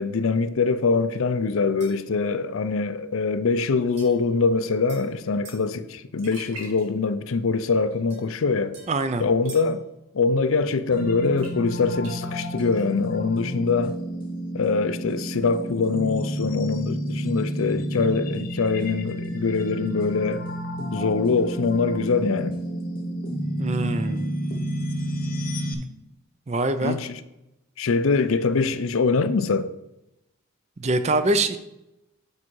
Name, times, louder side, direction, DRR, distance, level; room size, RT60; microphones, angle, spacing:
voice 1, 0.0-8.8 9.2-9.8 10.1-14.0 14.5-20.4 20.9-22.6 26.8-27.1 27.8-29.7, left 4 dB, 75° left, 0.5 m, -23 dB
sound 1, 1.8-2.2 4.0-5.7 8.1-9.8, right 4 dB, 55° right, 3.0 m, -48 dB
sound 2, 5.9-6.0 6.2-7.3 7.6-8.0 9.2-9.5 11.4-11.5 12.0-13.0, equal, 75° right, 2.1 m, -44 dB
voice 2, 8.9-9.3 23.6-24.3 26.5-27.0 30.8-31.6, right 2 dB, 30° right, 0.5 m, -24 dB
sound 3, 10.9-25.7, equal, 45° left, 0.9 m, -30 dB
8.5 x 4.8 x 4.6 m
head